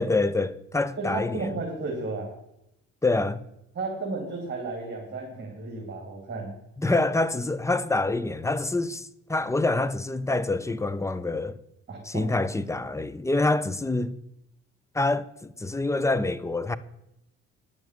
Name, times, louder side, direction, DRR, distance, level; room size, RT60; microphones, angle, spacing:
voice 1, 0.0-1.5 3.0-3.4 6.8-11.6 12.0-14.2 14.9-16.8, left 2 dB, 10° left, 0.7 m, -26 dB
voice 2, 1.0-2.3 3.7-6.5 11.9-12.3, right 3 dB, 35° right, 3.6 m, -33 dB
10.5 x 7.0 x 7.8 m
cardioid pair, 90°, 30 cm